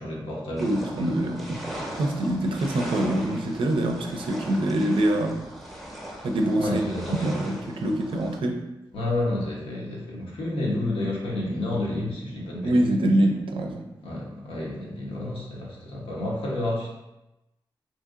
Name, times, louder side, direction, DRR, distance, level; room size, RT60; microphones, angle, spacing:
voice 1, 0.0-1.4 6.6-7.5 8.9-12.9 14.0-16.9, left 1 dB, 75° left, -4 dB, 0.8 m, -30 dB
sound 1, 0.6-8.4, equal, ahead, 0.7 m, -39 dB
voice 2, 0.6-1.6 2.0-5.4 6.2-6.8 7.2-8.6 12.6-13.8, right 1 dB, 70° right, 3 dB, 0.4 m, -24 dB
2.8 x 2.7 x 2.4 m, 0.95 s
cardioid pair, 60°, 9 cm